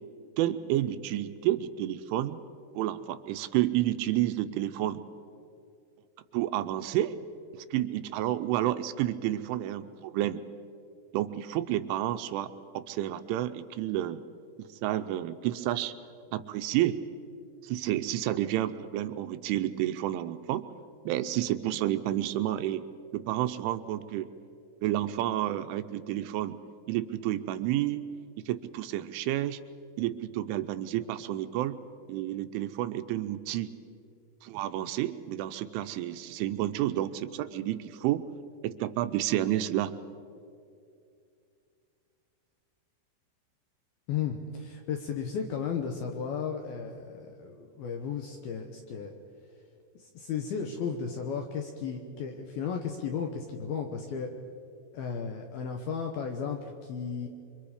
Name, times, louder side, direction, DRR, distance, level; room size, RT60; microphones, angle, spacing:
voice 1, 0.4-2.4 2.8-5.0 6.3-7.2 7.5-10.4 11.1-14.2 14.6-15.9 16.3-17.0 17.6-20.6 21.1-22.8 23.1-24.3 24.8-26.6 26.9-28.0 28.4-29.6 30.0-31.8 32.1-33.7 34.4-38.2 38.6-39.9, right 13 dB, 85° right, 10 dB, 3.1 m, -30 dB
voice 2, 44.1-49.1 50.0-54.3 54.9-57.3, left 6 dB, 75° left, 3 dB, 2.3 m, -34 dB
27.0 x 24.0 x 5.0 m, 2.5 s
omnidirectional pair, 5.6 m